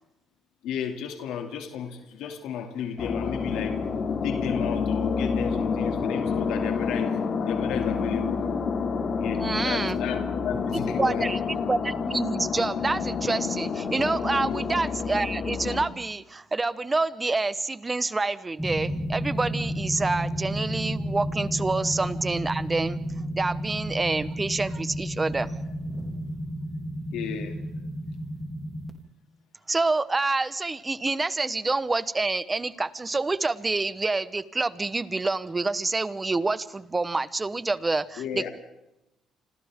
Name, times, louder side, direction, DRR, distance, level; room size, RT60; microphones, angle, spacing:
voice 1, 0.6-3.9 4.2-8.4 9.2-11.6 14.4-14.7 27.1-27.6 38.2-38.5, left 8 dB, 85° left, 5 dB, 2.7 m, -33 dB
sound 1, 3.0-15.9, left 5 dB, 50° left, 2.7 m, -28 dB
voice 2, 9.4-10.0 10.8-23.0 23.4-25.6 29.7-38.5, right 3 dB, 20° right, 15 dB, 1.1 m, -27 dB
sound 2, 18.6-28.9, equal, ahead, 3.1 m, -32 dB
29.5 x 26.5 x 3.8 m, 0.88 s
cardioid pair, 100°, 0 cm